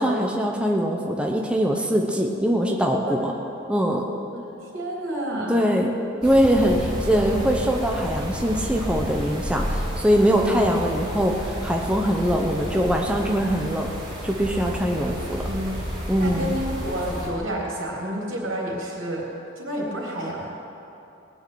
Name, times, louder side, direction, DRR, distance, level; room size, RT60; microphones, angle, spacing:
voice 1, 0.0-3.3 3.7-4.1 5.5-5.9 6.2-13.9 14.2-15.5 16.1-16.5, equal, 5° right, 1 dB, 0.9 m, -22 dB
voice 2, 4.3-5.6 7.1-7.6 15.3-15.7 16.2-19.3 19.6-20.5, equal, 90° right, -3 dB, 3.6 m, -30 dB
sound 1, 6.2-17.3, equal, 20° right, 3.8 m, -31 dB
19.0 x 6.5 x 9.2 m, 2.8 s
head